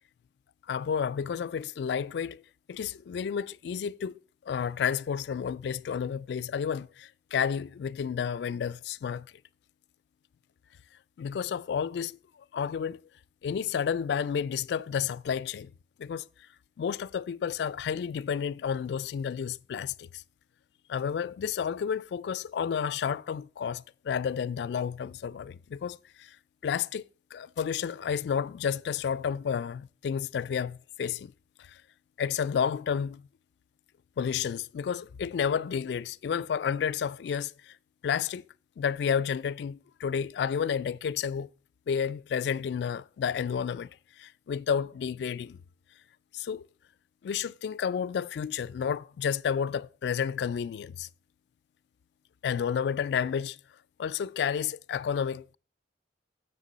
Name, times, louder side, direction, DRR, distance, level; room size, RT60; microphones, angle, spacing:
voice 1, 0.7-2.4 2.7-4.1 4.5-9.3 11.2-12.2 12.5-13.0 13.4-15.7 16.0-16.3 16.8-20.2 20.9-26.4 26.6-27.0 27.3-31.3 31.6-31.8 32.2-33.3 34.2-37.8 38.0-38.4 38.8-41.5 41.9-43.9 44.2-45.6 46.3-46.7 47.2-51.1 52.4-53.6 54.0-55.5, left 7 dB, 65° left, 0.3 m, -31 dB
7.4 x 6.6 x 3.9 m
head